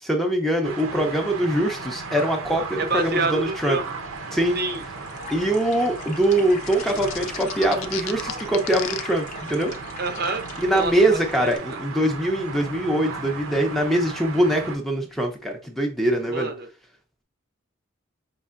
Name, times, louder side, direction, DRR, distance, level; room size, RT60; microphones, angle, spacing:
voice 1, 0.0-3.8 4.3-4.6 5.3-9.7 10.6-16.5, right 1 dB, ahead, 2 dB, 0.6 m, -23 dB
sound 1, 0.6-14.8, right 4 dB, 85° right, 0.8 m, -36 dB
voice 2, 2.8-3.8 4.5-4.8 9.6-9.7 10.0-11.8 16.3-16.7, right 3 dB, 50° right, 6 dB, 0.6 m, -28 dB
sound 2, 3.7-11.6, left 3 dB, 35° left, 0.7 m, -41 dB
sound 3, 6.7-9.0, left 11 dB, 75° left, 0.4 m, -32 dB
5.4 x 3.1 x 2.5 m, 0.33 s
head